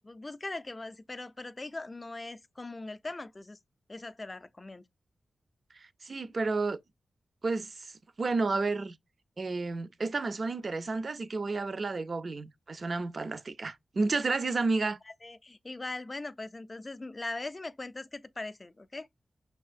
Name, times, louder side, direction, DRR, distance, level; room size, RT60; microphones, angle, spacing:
voice 1, 0.0-3.6 3.9-4.9 15.1-19.1, left 2 dB, 25° left, 0.4 m, -40 dB
voice 2, 6.0-6.8 7.4-7.9 8.2-9.0 9.4-15.0, right 3 dB, 45° right, 0.5 m, -31 dB
5.7 x 3.4 x 2.4 m
wide cardioid pair, 95°, 0 cm